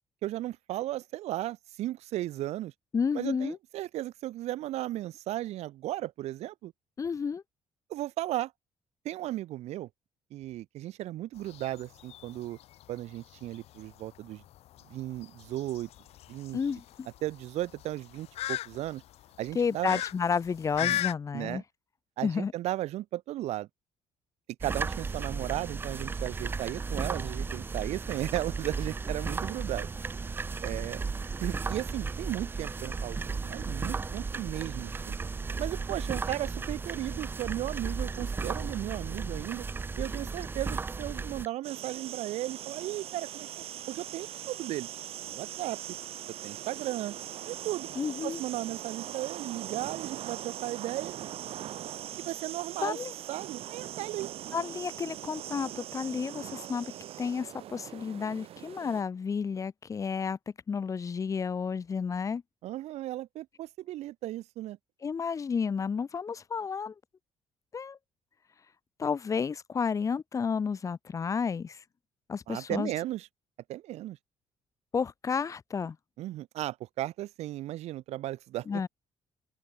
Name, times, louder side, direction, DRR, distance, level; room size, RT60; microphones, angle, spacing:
voice 1, 0.2-2.7 3.1-6.7 7.9-8.5 9.0-9.9 10.3-12.6 12.9-14.4 14.9-15.9 16.3-16.6 17.2-19.0 19.4-20.0 20.8-21.0 21.3-21.6 22.2-23.7 24.6-29.9 30.6-31.0 31.4-35.2 35.6-39.6 40.0-43.5 43.9-44.9 45.2-45.8 46.4-47.1 47.4-47.9 48.2-51.1 52.2-53.0 53.3-54.3 62.6-64.8 72.5-73.3 73.7-74.2 76.2-78.8, right 15 dB, 80° right, 3.1 m, -35 dB
voice 2, 2.9-3.6 7.0-7.4 16.5-17.1 19.5-21.6 22.2-22.5 48.0-48.4 52.8-53.1 54.5-56.9 57.2-60.4 60.7-62.4 65.0-66.9 67.7-68.0 69.0-71.8 72.3-72.9 74.9-76.0 78.7-78.9, left 6 dB, 30° left, 3.9 m, -31 dB
sound 1, 11.4-21.1, left 14 dB, 70° left, 1.2 m, -38 dB
sound 2, 24.6-41.5, right 4 dB, 20° right, 0.7 m, -35 dB
sound 3, 41.6-59.0, right 12 dB, 60° right, 3.6 m, -41 dB
open air
cardioid pair, 155°, 11 cm